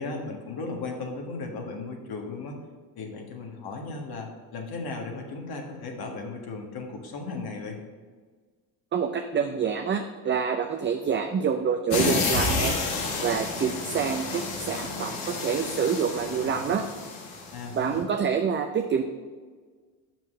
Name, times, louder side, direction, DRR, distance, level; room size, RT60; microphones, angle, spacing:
voice 1, 0.0-2.6 3.0-7.8 17.5-18.1, left 3 dB, 55° left, 2 dB, 1.6 m, -36 dB
voice 2, 8.9-12.7 13.2-16.8 17.7-19.0, right 6 dB, 25° right, 5 dB, 0.5 m, -27 dB
sound 1, 11.9-17.8, left 3 dB, 85° left, 1.5 m, -30 dB
6.0 x 5.4 x 6.2 m, 1.5 s
supercardioid pair, 80°, 44 cm